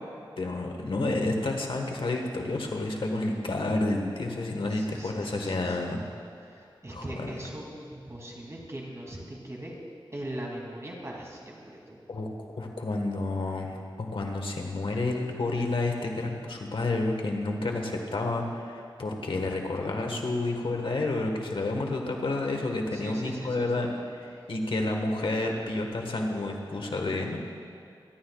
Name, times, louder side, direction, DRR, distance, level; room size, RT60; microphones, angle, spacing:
voice 1, 0.4-6.0 6.9-7.3 12.1-12.3 12.6-23.9 24.5-27.4, left 2 dB, 75° left, 2 dB, 1.4 m, -30 dB
voice 2, 4.7-5.8 6.5-9.7 10.1-12.0 22.9-23.8, right 1 dB, 35° right, -2 dB, 2.6 m, -40 dB
23.5 x 12.0 x 2.4 m, 2.4 s
wide cardioid pair, 75°, 9 cm